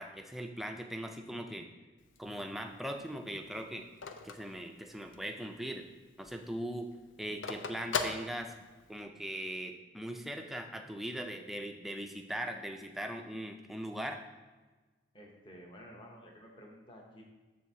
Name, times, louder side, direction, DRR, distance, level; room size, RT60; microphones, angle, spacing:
voice 1, 0.0-1.7 2.2-3.9 4.2-5.9 6.2-6.9 7.2-8.6 8.9-14.2, equal, ahead, 4 dB, 0.4 m, -40 dB
Telephone, 2.0-5.4 5.8-5.9 6.1-9.0, left 5 dB, 90° left, 0.5 m, -39 dB
voice 2, 15.1-17.2, equal, 25° left, 0 dB, 0.9 m, -52 dB
7.6 x 6.8 x 2.8 m, 1.3 s
head